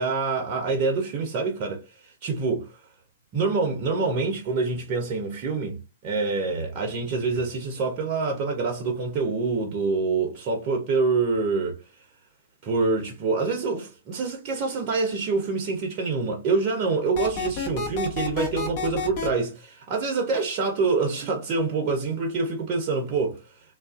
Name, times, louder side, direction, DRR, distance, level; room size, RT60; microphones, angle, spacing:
voice 1, 0.0-1.8 2.2-2.7 3.3-11.8 12.6-23.4, right 4 dB, 40° right, 0.7 m, -26 dB
sound 1, 17.2-19.3, left 4 dB, 45° left, 1.0 m, -29 dB
2.4 x 2.3 x 2.4 m
figure-of-eight pair, 110°, 0 cm